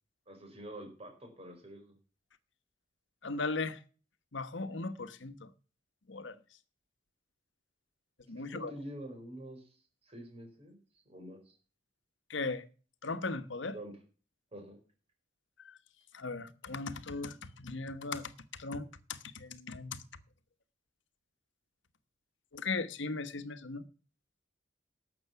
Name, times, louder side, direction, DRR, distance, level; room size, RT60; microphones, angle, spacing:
voice 1, 0.3-1.9 8.4-9.7 10.0-10.8 11.0-11.6 13.7-13.9 14.5-14.8, right 1 dB, 30° right, 4.6 m, -46 dB
voice 2, 3.2-3.8 4.3-5.5 6.1-6.4 8.3-8.7 12.3-12.6 13.0-13.7 15.6-15.8 16.1-20.0 22.5-23.8, left 3 dB, 70° left, 1.1 m, -38 dB
12.0 x 7.9 x 5.9 m
head